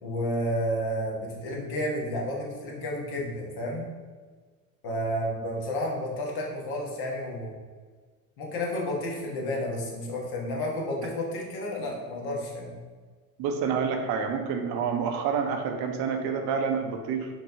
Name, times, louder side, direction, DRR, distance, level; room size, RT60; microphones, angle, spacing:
voice 1, 0.0-3.9 4.8-7.5 8.4-12.8, equal, 60° left, -1 dB, 1.3 m, -31 dB
voice 2, 13.4-17.3, right 6 dB, 70° right, 5 dB, 0.7 m, -28 dB
4.7 x 3.0 x 2.7 m, 1.5 s
hypercardioid pair, 70°, 42 cm